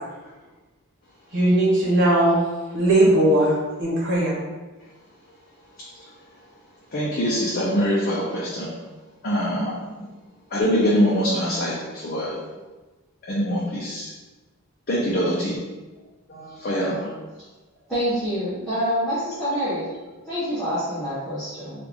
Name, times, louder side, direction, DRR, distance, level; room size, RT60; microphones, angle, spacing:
voice 1, 1.3-2.4 2.7-3.5 3.8-4.3, right 1 dB, 55° right, -5 dB, 1.2 m, -18 dB
voice 2, 6.9-8.7 9.2-9.7 10.5-11.7 12.0-12.3 13.3-14.1 14.9-15.6 16.3-17.1, equal, 40° left, -6 dB, 0.5 m, -23 dB
voice 3, 17.9-19.9 20.3-21.8, equal, ahead, -16 dB, 1.0 m, -26 dB
3.3 x 2.4 x 3.4 m, 1.2 s
head